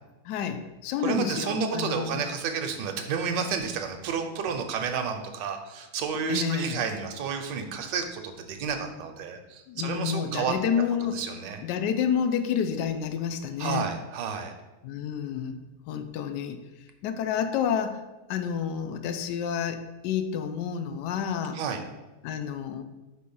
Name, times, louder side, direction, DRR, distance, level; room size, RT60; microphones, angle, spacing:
voice 1, 0.2-2.2 6.3-6.8 9.7-11.2 11.6-13.8 14.8-16.6 17.0-18.0 18.3-21.6 22.2-22.8, left 8 dB, 75° left, 8 dB, 1.2 m, -29 dB
voice 2, 1.0-10.5 11.1-11.6 13.6-14.5 21.5-21.8, right 6 dB, 75° right, 5 dB, 1.4 m, -31 dB
4.7 x 4.3 x 5.4 m, 1.1 s
omnidirectional pair, 2.0 m